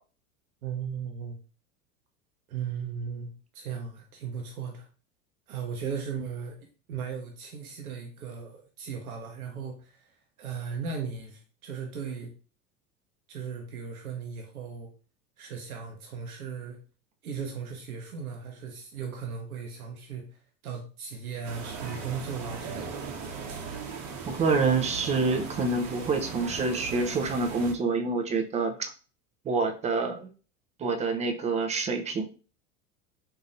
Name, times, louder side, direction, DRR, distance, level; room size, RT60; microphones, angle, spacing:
voice 1, 0.6-1.4 2.5-4.9 5.5-6.6 6.9-12.3 13.3-14.9 15.4-16.8 17.2-23.2, right 6 dB, 80° right, 1 dB, 0.8 m, -37 dB
sound 1, 21.4-27.7, right 5 dB, 40° right, 0.9 m, -38 dB
voice 2, 24.3-28.9 29.5-30.3 30.8-32.2, right 4 dB, 15° right, 6 dB, 0.4 m, -27 dB
4.0 x 2.7 x 2.5 m, 0.38 s
figure-of-eight pair, 80°, 42 cm